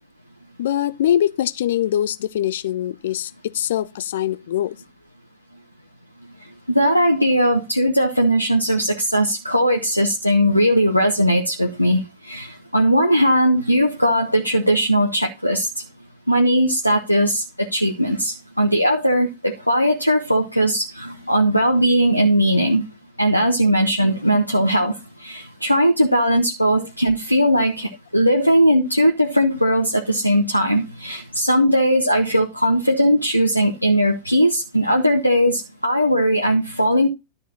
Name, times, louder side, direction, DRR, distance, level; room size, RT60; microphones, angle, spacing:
voice 1, 0.6-4.8 26.8-26.9, left 11 dB, 60° left, 0.5 m, -23 dB
voice 2, 6.7-15.7 16.3-22.9 23.2-37.1, equal, 90° left, 1.0 m, -19 dB
11.5 x 4.5 x 5.3 m
figure-of-eight pair, 90°, 0 cm